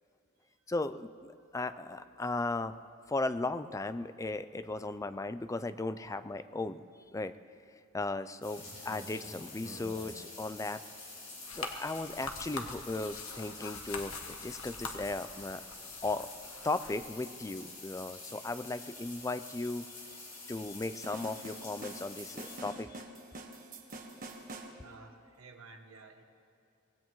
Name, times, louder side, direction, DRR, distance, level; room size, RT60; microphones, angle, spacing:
voice 1, 0.7-2.8 3.1-6.8 7.1-7.3 7.9-10.8 11.5-15.6 16.0-16.3 16.6-19.8 20.5-23.0, left 2 dB, 15° left, 12 dB, 0.4 m, -36 dB
sound 1, 8.4-22.6, left 2 dB, 40° left, 4.9 m, -48 dB
sound 2, 11.4-16.9, left 4 dB, 85° left, 1.4 m, -44 dB
sound 3, 21.0-24.7, right 2 dB, 40° right, 1.4 m, -46 dB
voice 2, 24.8-26.2, right 3 dB, 85° right, 4 dB, 1.4 m, -54 dB
24.0 x 19.5 x 3.1 m, 2.5 s
head